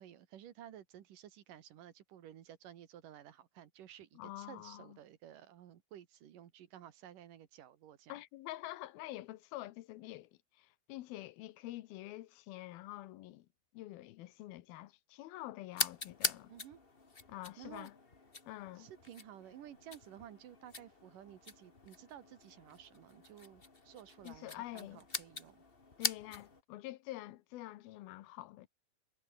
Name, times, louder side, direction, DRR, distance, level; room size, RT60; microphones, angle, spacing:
voice 1, 0.0-8.1 16.5-16.8 17.6-17.9 18.8-25.6, right 11 dB, 65° right, 3.0 m, -54 dB
voice 2, 4.1-5.0 8.1-13.5 13.7-16.5 17.3-18.0 18.5-18.9 24.2-25.0 26.0-28.7, left 16 dB, 90° left, 2.8 m, -47 dB
sound 1, 15.7-26.6, left 3 dB, 25° left, 1.4 m, -43 dB
omnidirectional pair, 4.2 m